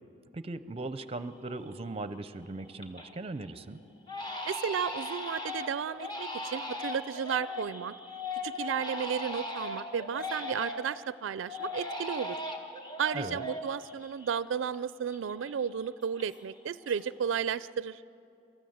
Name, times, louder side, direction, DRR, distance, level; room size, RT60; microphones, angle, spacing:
voice 1, 0.3-3.8 13.1-13.4, right 2 dB, 30° right, 14 dB, 0.6 m, -38 dB
Crying sobbing, 0.9-1.0 1.5-1.9 2.3-3.2 3.5-3.6 4.1-11.0 11.5-14.8 15.1-16.6 16.8-17.4, left 2 dB, 25° left, 1.6 m, -39 dB
voice 2, 4.4-7.9 8.4-12.4 13.0-18.0, right 7 dB, 85° right, 17 dB, 0.4 m, -33 dB
25.0 x 13.5 x 7.9 m, 2.7 s
head